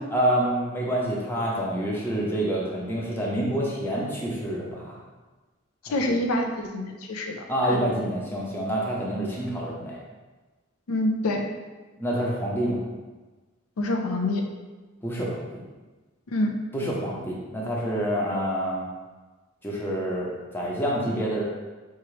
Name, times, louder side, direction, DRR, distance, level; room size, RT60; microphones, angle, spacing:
voice 1, 0.1-5.0 5.9-6.2 7.5-10.0 12.0-12.8 15.0-15.6 16.7-18.9 19.6-20.3 20.5-21.4, right 1 dB, 10° left, -4 dB, 0.6 m, -27 dB
voice 2, 5.9-7.9 10.9-11.5 13.8-14.4 16.3-16.5, left 1 dB, 80° left, 3 dB, 0.5 m, -26 dB
4.6 x 2.9 x 3.1 m, 1.2 s
head